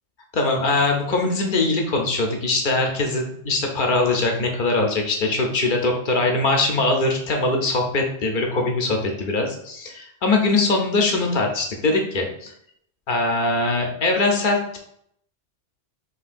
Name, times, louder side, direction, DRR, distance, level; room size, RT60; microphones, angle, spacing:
voice 1, 0.3-12.5 13.1-14.8, left 2 dB, 50° left, 2 dB, 0.7 m, -22 dB
5.4 x 3.1 x 2.5 m, 0.71 s
omnidirectional pair, 1.2 m